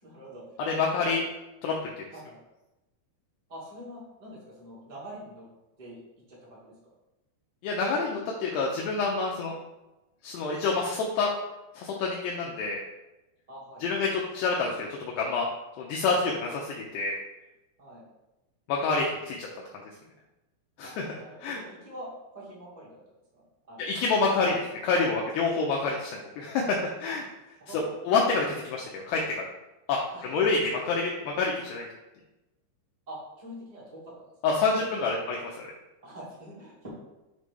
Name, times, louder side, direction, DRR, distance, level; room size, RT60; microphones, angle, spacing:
voice 1, 0.0-0.4 1.0-1.1 2.1-2.4 3.5-5.4 5.8-6.0 6.3-6.7 13.5-13.8 17.8-18.0 20.8-23.0 23.3-23.8 24.1-24.2 27.1-27.2 27.6-27.9 30.1-30.6 33.1-34.8 36.0-36.9, right 1 dB, 55° right, -7 dB, 0.4 m, -45 dB
voice 2, 0.6-1.2 1.6-2.0 7.6-9.6 10.2-11.3 11.7-12.8 13.8-15.5 15.8-17.1 18.7-19.5 20.8-21.0 21.4-21.6 23.8-27.2 28.1-29.5 29.9-31.9 34.4-35.4, left 4 dB, 80° left, -2 dB, 2.5 m, -27 dB
7.4 x 3.3 x 5.3 m, 0.99 s
omnidirectional pair, 5.6 m